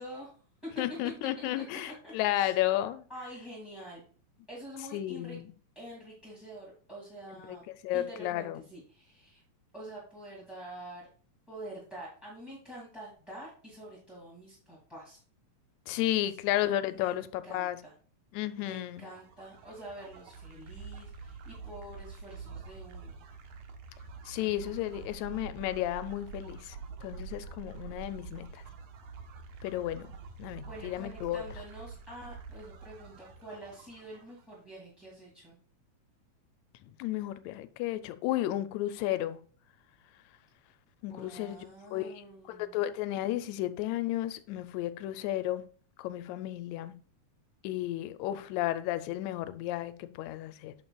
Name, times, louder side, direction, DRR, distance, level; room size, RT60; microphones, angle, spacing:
voice 1, 0.0-2.5 3.1-4.0 4.5-5.4 5.7-7.6 7.9-9.4 9.7-11.1 11.5-15.2 17.0-17.9 18.6-23.1 24.4-25.1 30.6-35.5 41.1-42.8, right 1 dB, ahead, 1.5 m, -46 dB
voice 2, 0.8-3.0 4.9-5.5 7.4-7.6 7.8-8.6 15.9-17.8 18.3-19.1 24.2-28.6 29.6-30.1 30.4-31.4 37.0-39.4 41.0-41.7 41.9-45.6 46.0-46.9 47.6-50.7, left 14 dB, 80° left, 1.7 m, -33 dB
sound 1, 18.9-34.6, right 5 dB, 75° right, 2.3 m, -46 dB
8.7 x 6.9 x 2.3 m
omnidirectional pair, 3.5 m